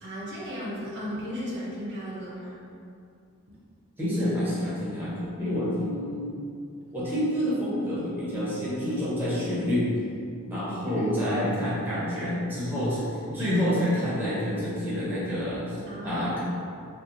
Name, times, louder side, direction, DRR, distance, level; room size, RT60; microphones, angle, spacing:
voice 1, 0.0-2.5 10.8-11.0 15.9-16.3, equal, 50° right, -6 dB, 0.5 m, -35 dB
voice 2, 4.0-6.3 6.9-9.9 10.4-16.4, equal, 10° right, -9 dB, 0.6 m, -28 dB
2.8 x 2.1 x 2.5 m, 2.4 s
head